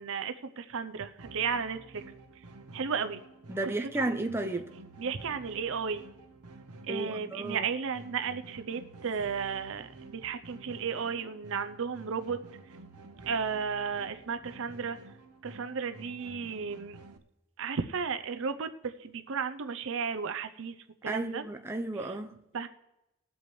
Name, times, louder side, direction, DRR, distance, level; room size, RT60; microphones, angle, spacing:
voice 1, 0.0-2.0 2.7-3.2 3.6-4.1 5.0-6.0 6.9-12.4 13.3-15.0 15.4-17.0 17.6-20.8 21.0-21.5 21.9-22.2 22.5-22.7, right 6 dB, 60° right, 0.6 m, -34 dB
sound 1, 1.2-17.2, right 2 dB, 90° right, 0.9 m, -50 dB
voice 2, 3.5-4.7 6.9-7.7 21.1-22.4, right 2 dB, 10° right, 0.6 m, -33 dB
20.5 x 7.9 x 3.2 m
head